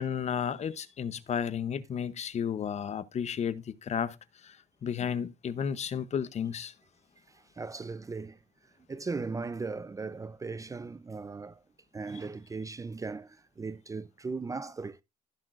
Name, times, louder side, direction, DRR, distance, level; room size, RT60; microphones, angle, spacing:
voice 1, 0.0-4.2 4.4-4.6 4.8-6.7, left 8 dB, 40° left, 0.9 m, -32 dB
voice 2, 7.3-8.4 8.9-11.6 11.9-15.0, right 4 dB, 20° right, 0.6 m, -38 dB
15.5 x 6.1 x 2.5 m
cardioid pair, 110°, 17 cm